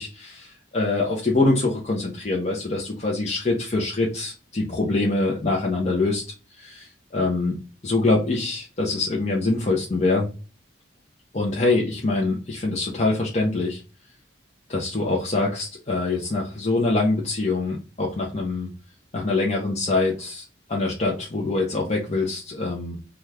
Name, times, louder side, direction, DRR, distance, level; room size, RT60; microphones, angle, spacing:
voice 1, 0.0-6.2 6.6-10.3 11.3-13.8 14.7-18.7 19.1-20.4 20.7-23.2, left 2 dB, 35° left, -3 dB, 0.6 m, -24 dB
3.0 x 2.3 x 3.3 m, 0.34 s
head